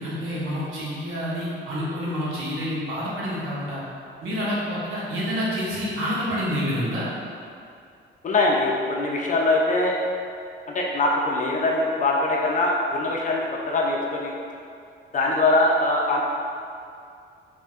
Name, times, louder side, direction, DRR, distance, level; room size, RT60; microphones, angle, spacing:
voice 1, 0.0-3.8 4.2-7.1, equal, 90° right, -7 dB, 1.1 m, -28 dB
voice 2, 8.2-9.9 10.7-14.3 15.1-16.2, left 2 dB, 40° left, -2 dB, 0.5 m, -22 dB
4.4 x 2.8 x 2.4 m, 2.4 s
cardioid pair, 90°, 20 cm